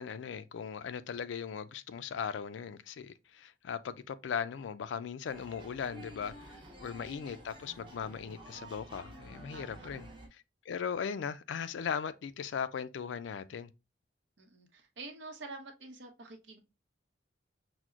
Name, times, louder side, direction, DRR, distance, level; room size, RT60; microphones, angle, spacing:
voice 1, 0.0-10.1 10.7-13.7, left 7 dB, 90° left, 0.4 m, -38 dB
sound 1, 5.2-10.3, right 1 dB, 25° right, 0.7 m, -50 dB
voice 2, 9.5-9.9 14.4-16.6, right 3 dB, 85° right, 0.8 m, -48 dB
5.9 x 2.1 x 2.4 m
head